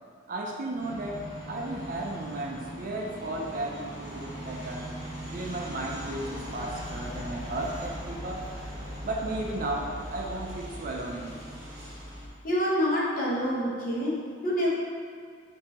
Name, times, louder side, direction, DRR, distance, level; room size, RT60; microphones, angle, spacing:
voice 1, 0.3-4.9 5.3-8.5 9.0-11.4, right 2 dB, 50° right, 0 dB, 0.4 m, -34 dB
sound 1, 0.8-12.3, equal, 15° right, 1.4 m, -39 dB
voice 2, 12.4-14.1 14.4-14.7, equal, 50° left, -5 dB, 1.0 m, -26 dB
6.0 x 2.7 x 2.9 m, 2.1 s
head